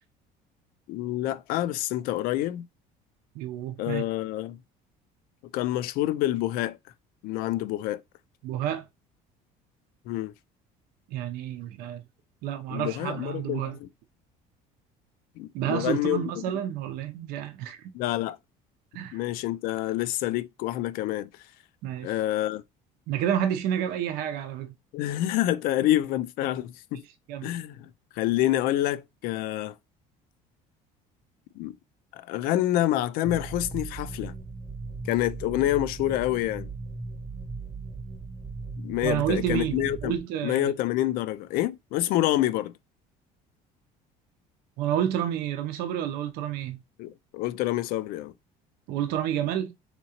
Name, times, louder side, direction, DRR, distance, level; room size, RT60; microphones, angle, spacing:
voice 1, 0.9-2.7 3.8-4.6 5.5-6.8 7.2-8.0 10.1-10.3 12.7-13.9 15.4-16.4 17.9-18.4 19.1-21.3 22.0-22.6 24.9-27.0 27.4-27.9 28.2-29.8 31.6-31.8 32.1-34.3 35.0-36.7 38.8-40.1 40.4-42.7 47.0-48.3, left 14 dB, 70° left, 0.4 m, -27 dB
voice 2, 3.3-4.0 8.4-8.8 11.1-12.0 12.4-13.8 15.5-17.8 18.9-19.2 21.8-22.1 23.1-24.7 27.3-27.5 39.0-40.7 44.8-46.8 48.9-49.7, right 10 dB, 70° right, 0.6 m, -29 dB
sound 1, 33.2-40.2, right 3 dB, 5° right, 0.6 m, -38 dB
3.6 x 2.9 x 2.8 m
cardioid pair, 135°, 16 cm